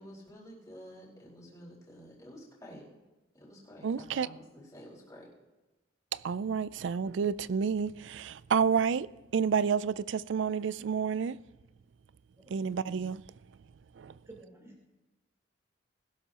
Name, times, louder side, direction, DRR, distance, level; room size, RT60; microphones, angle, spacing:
voice 1, 0.0-2.8 3.3-5.3, equal, 15° left, 4.6 m, -50 dB
voice 2, 3.8-4.3 6.1-11.4 12.5-13.2 14.0-14.2, right 6 dB, 70° right, 0.4 m, -30 dB
voice 3, 12.4-13.2 14.2-14.9, right 2 dB, 15° right, 4.1 m, -52 dB
20.5 x 12.0 x 2.9 m
head